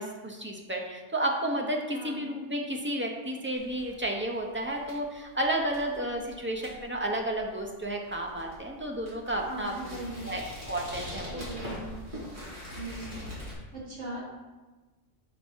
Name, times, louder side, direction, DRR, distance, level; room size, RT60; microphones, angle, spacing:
voice 1, 0.0-10.0 10.2-10.4 10.7-11.5, right 1 dB, 20° right, 1 dB, 0.3 m, -32 dB
voice 2, 1.9-2.4 6.0-6.1 9.4-10.2 11.3-12.0 12.7-13.2 13.7-14.3, right 2 dB, 70° right, -4 dB, 1.7 m, -40 dB
sound 1, 3.5-13.5, left 1 dB, 40° right, 2.3 m, -43 dB
5.9 x 4.6 x 4.4 m, 1.2 s
omnidirectional pair, 1.3 m